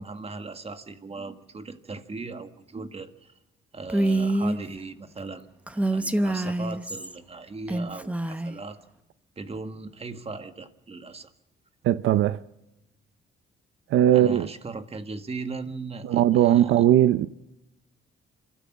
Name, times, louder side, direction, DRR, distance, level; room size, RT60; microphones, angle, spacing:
voice 1, 0.0-3.3 3.7-5.5 5.9-8.8 9.4-11.3 14.1-16.9, right 3 dB, 30° right, 1.8 m, -38 dB
Female speech woman speaking, 3.9-4.6 5.7-7.1 7.7-8.6, right 1 dB, 5° right, 1.0 m, -26 dB
voice 2, 11.8-12.4 13.9-14.5 16.0-17.3, right 12 dB, 80° right, 0.6 m, -19 dB
27.0 x 13.0 x 7.3 m
cardioid pair, 90°, 20 cm